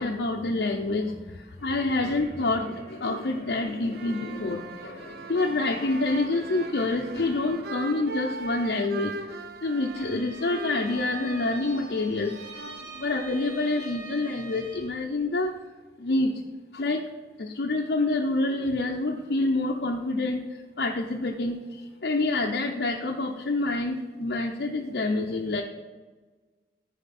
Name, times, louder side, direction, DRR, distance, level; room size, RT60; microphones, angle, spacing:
voice 1, 0.0-12.4 12.9-15.6 16.0-16.3 16.7-17.1 17.4-25.6, left 2 dB, 65° left, -1 dB, 0.7 m, -27 dB
sound 1, 1.6-8.8, right 1 dB, 35° right, 1.3 m, -48 dB
sound 2, 3.8-13.6, right 3 dB, 55° right, 0.5 m, -40 dB
Bowed string instrument, 9.7-15.0, right 4 dB, 90° right, 2.4 m, -44 dB
13.5 x 5.0 x 4.2 m, 1.4 s
head